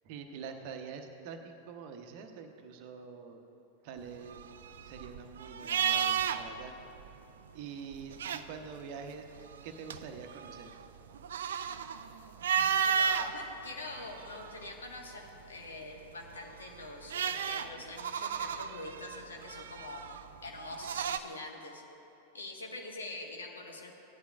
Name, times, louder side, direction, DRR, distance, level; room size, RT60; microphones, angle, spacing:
voice 1, 0.0-3.4 3.8-4.4 4.8-6.7 7.5-9.3 9.6-10.7, right 6 dB, 45° right, 5 dB, 0.9 m, -45 dB
sound 1, 4.1-6.7 7.0-7.1 7.9-8.8 9.4-13.3 13.9-14.8 16.3-21.2, right 7 dB, 60° right, 0.4 m, -33 dB
voice 2, 12.6-20.1 20.4-21.8 22.3-23.9, left 2 dB, 70° left, 1 dB, 1.5 m, -45 dB
17.0 x 11.5 x 2.5 m, 3.0 s
figure-of-eight pair, 90°, 0 cm